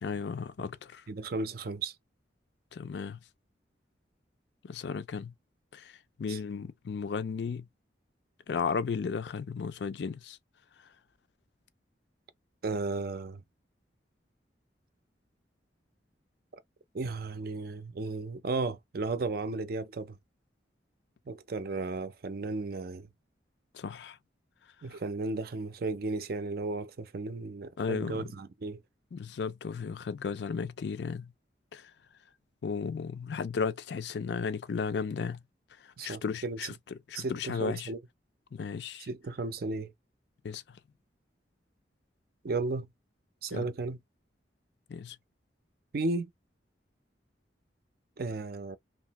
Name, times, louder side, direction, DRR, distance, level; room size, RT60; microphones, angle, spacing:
voice 1, 0.0-1.0 2.7-3.2 4.6-5.3 5.7-7.7 8.5-10.4 23.7-24.2 24.9-25.0 27.8-28.3 29.1-31.3 31.7-31.9 32.6-35.4 35.8-37.9 38.5-39.1 40.4-40.8 43.5-43.7 44.9-45.2, left 5 dB, 65° left, 0.4 m, -35 dB
voice 2, 1.1-1.9 6.3-6.4 12.6-13.4 16.9-20.2 21.3-23.1 24.8-28.8 36.0-36.7 37.1-38.0 39.1-39.9 42.4-42.9 43.4-44.0 45.9-46.3 48.2-48.8, right 3 dB, 55° right, 0.5 m, -34 dB
2.8 x 2.3 x 2.9 m
head